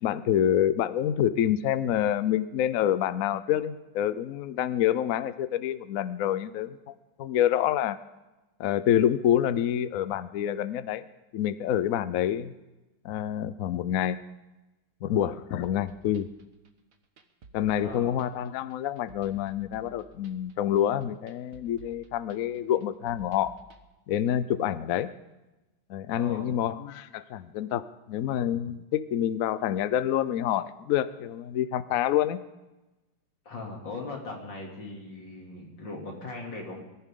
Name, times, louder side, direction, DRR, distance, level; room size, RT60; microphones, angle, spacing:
voice 1, 0.0-8.0 8.6-11.0 11.3-12.5 13.0-14.2 15.0-16.3 17.5-23.5 24.1-25.1 25.9-27.8 28.1-32.4, left 10 dB, 80° left, 14 dB, 0.7 m, -27 dB
sound 1, 15.6-23.8, right 2 dB, 45° right, 1.4 m, -54 dB
voice 2, 17.8-18.2 26.2-26.5 33.5-36.8, left 3 dB, 60° left, 0 dB, 3.6 m, -39 dB
24.0 x 14.5 x 3.8 m, 1.0 s
omnidirectional pair, 2.3 m